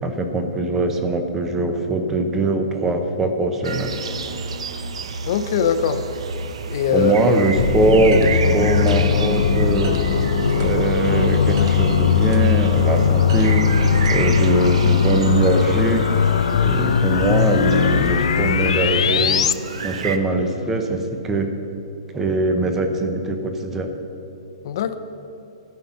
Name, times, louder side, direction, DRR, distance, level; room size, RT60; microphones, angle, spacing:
voice 1, 0.0-3.9 6.9-9.9 10.6-13.6 14.1-16.0 16.6-19.5 19.8-21.5 22.1-23.9, right 2 dB, 10° right, 5 dB, 0.8 m, -21 dB
sound 1, 3.6-20.2, right 4 dB, 75° right, 0.9 m, -31 dB
voice 2, 5.3-6.0 6.7-7.1 24.6-25.0, left 8 dB, 40° left, 9 dB, 0.7 m, -21 dB
sound 2, 7.6-19.5, left 7 dB, 70° left, 0.4 m, -19 dB
sound 3, 7.6-14.5, right 3 dB, 40° right, 1.2 m, -30 dB
13.0 x 5.7 x 9.5 m, 2.7 s
hypercardioid pair, 175°, 3 cm